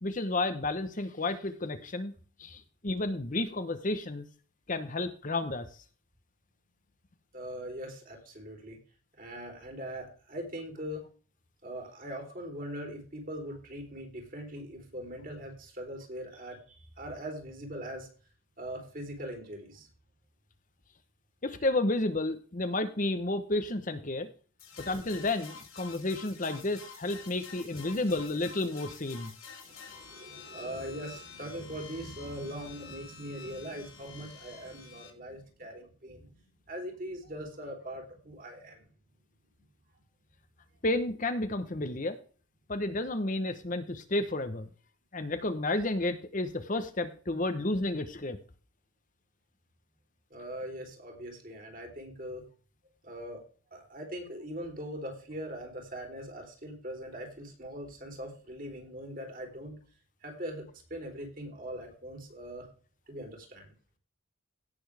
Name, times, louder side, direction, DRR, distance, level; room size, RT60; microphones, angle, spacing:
voice 1, 0.0-2.1 2.4-4.3 4.7-5.7 21.4-24.3 24.8-29.3 40.8-42.2 42.7-44.7 45.1-48.4, left 2 dB, 35° left, 9 dB, 1.0 m, -31 dB
voice 2, 7.3-8.8 9.1-11.0 11.6-18.1 18.6-19.9 29.6-36.3 36.7-38.9 50.3-52.4 53.0-53.4 53.7-59.8 60.2-62.7 63.1-63.7, equal, 40° right, 2 dB, 3.8 m, -41 dB
sound 1, 24.6-35.1, left 5 dB, 75° left, 3.4 m, -49 dB
17.0 x 7.0 x 3.5 m, 0.39 s
head